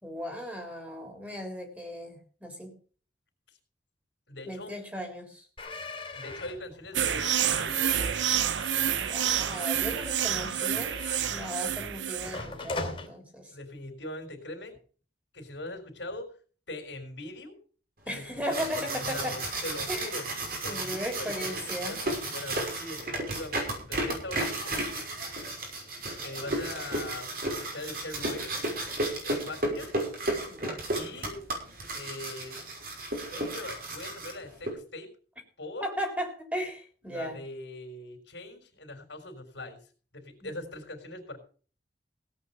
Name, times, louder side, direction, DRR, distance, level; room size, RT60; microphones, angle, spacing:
voice 1, 0.0-2.7 4.5-5.5 9.0-11.0 11.3-13.5 18.1-19.4 19.9-20.1 20.6-22.0 30.5-30.8 35.8-37.4 40.4-40.5, equal, 10° right, 3 dB, 3.8 m, -36 dB
voice 2, 4.3-4.7 6.2-8.1 13.5-14.8 15.3-16.3 16.7-17.6 18.1-20.2 20.6-21.6 21.9-25.1 26.2-28.5 29.2-30.0 30.9-31.4 31.9-32.6 33.3-35.1 35.6-35.9 37.0-39.8 40.1-41.4, left 2 dB, 75° left, 3 dB, 3.9 m, -41 dB
sound 1, 5.6-11.8 12.2-13.1, left 3 dB, 30° left, 3.0 m, -41 dB
sound 2, 6.9-12.4, right 10 dB, 85° right, 0.8 m, -28 dB
sound 3, 18.3-34.7, right 1 dB, 55° right, 5.9 m, -33 dB
17.0 x 8.7 x 5.5 m, 0.41 s
head